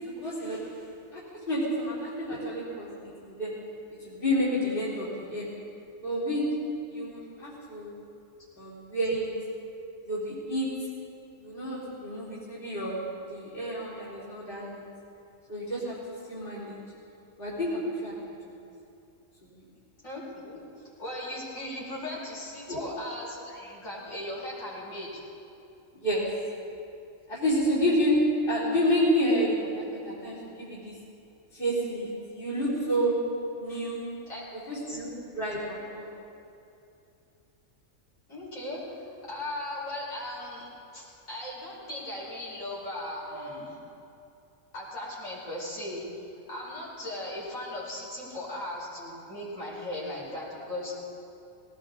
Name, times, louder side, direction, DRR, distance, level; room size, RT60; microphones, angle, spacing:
voice 1, 0.2-0.6 1.1-2.9 3.3-3.5 4.0-5.5 6.0-6.5 6.9-7.9 8.6-9.3 10.1-10.7 11.4-14.8 15.5-16.0 16.3-16.8 17.4-18.3 19.6-19.7 22.7-22.8 26.0-26.3 27.3-28.2 28.5-30.9 31.5-32.1 32.3-33.2 33.6-34.1 34.7-36.1 43.3-43.4, equal, 40° left, -8 dB, 3.7 m, -29 dB
voice 2, 20.0-20.6 21.0-25.2 34.3-35.0 38.3-40.7 40.9-43.8 44.7-46.1 46.5-50.9, left 1 dB, 75° left, -6 dB, 5.2 m, -38 dB
19.5 x 18.0 x 3.8 m, 2.7 s
omnidirectional pair, 1.4 m